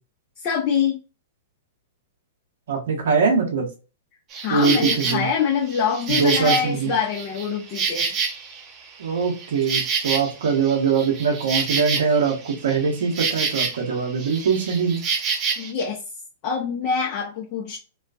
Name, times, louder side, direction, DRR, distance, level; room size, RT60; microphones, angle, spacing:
voice 1, 0.4-1.0 4.4-8.1 15.6-16.0 16.4-17.8, left 6 dB, 45° left, -1 dB, 0.6 m, -24 dB
voice 2, 2.7-3.7 4.5-5.3 6.1-6.9 9.0-15.0, right 5 dB, 70° right, 1 dB, 0.7 m, -22 dB
Insect, 4.3-5.2 5.7-8.7 9.0-13.9 14.2-15.7, right 5 dB, 30° right, 0.6 m, -27 dB
2.3 x 2.3 x 2.3 m, 0.32 s
hypercardioid pair, 110°, 0 cm